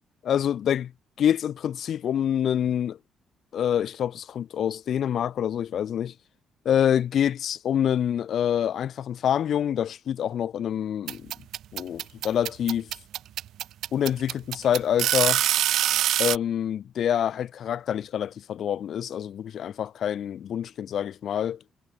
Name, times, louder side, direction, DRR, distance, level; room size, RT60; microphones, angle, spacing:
voice 1, 0.2-0.9 1.2-3.0 3.5-6.1 6.7-11.3 11.7-12.9 13.9-15.4 16.2-21.6, left 9 dB, 65° left, 5.5 m, -26 dB
sound 1, 11.1-16.4, right 12 dB, 80° right, 1.6 m, -24 dB
cardioid pair, 90°, 0 cm